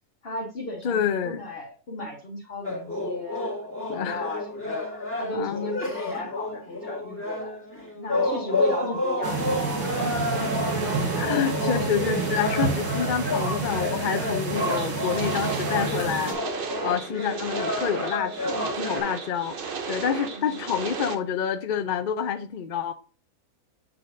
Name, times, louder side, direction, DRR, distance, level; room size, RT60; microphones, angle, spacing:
voice 1, 0.2-4.9 5.2-7.6 7.9-10.5 17.1-17.4 20.3-20.6, left 2 dB, 40° left, 1.4 m, -35 dB
voice 2, 0.8-1.4 3.9-4.2 5.3-5.8 11.2-22.9, left 8 dB, 75° left, 0.4 m, -28 dB
sound 1, 2.6-19.0, left 1 dB, 10° left, 1.6 m, -30 dB
sound 2, 9.2-16.3, right 4 dB, 85° right, 2.0 m, -29 dB
sound 3, 14.6-21.1, right 5 dB, 50° right, 0.7 m, -34 dB
7.5 x 5.7 x 2.6 m
omnidirectional pair, 1.6 m